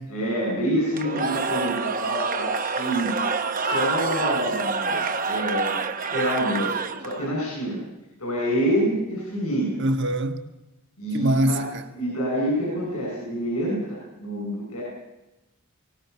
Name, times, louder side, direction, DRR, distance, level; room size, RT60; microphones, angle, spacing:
voice 1, 0.1-7.8 8.2-9.8 11.0-11.6 11.9-14.8, equal, 90° left, 7.6 m, -27 dB
Cheering / Crowd, 0.9-7.3, right 4 dB, 40° right, 1.2 m, -27 dB
voice 2, 9.8-10.4 11.1-11.7, right 1 dB, 55° right, 1.7 m, -23 dB
23.5 x 18.0 x 7.2 m
head